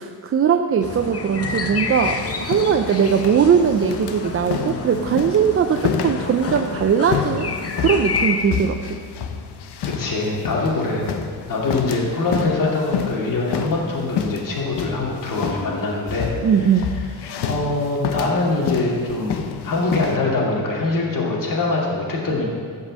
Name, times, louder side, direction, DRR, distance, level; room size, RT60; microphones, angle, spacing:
voice 1, 0.0-7.5 7.8-9.0 16.4-16.9, right 7 dB, 35° right, 5 dB, 0.5 m, -20 dB
sound 1, 0.8-8.4, left 5 dB, 35° left, 0.9 m, -29 dB
sound 2, 2.0-20.2, left 7 dB, 80° left, 0.9 m, -29 dB
voice 2, 9.8-11.1 11.5-16.3 16.9-17.0 17.4-19.4 19.6-22.4, left 2 dB, 55° left, -3 dB, 2.5 m, -23 dB
14.5 x 5.5 x 7.4 m, 2.1 s
wide cardioid pair, 150°, 39 cm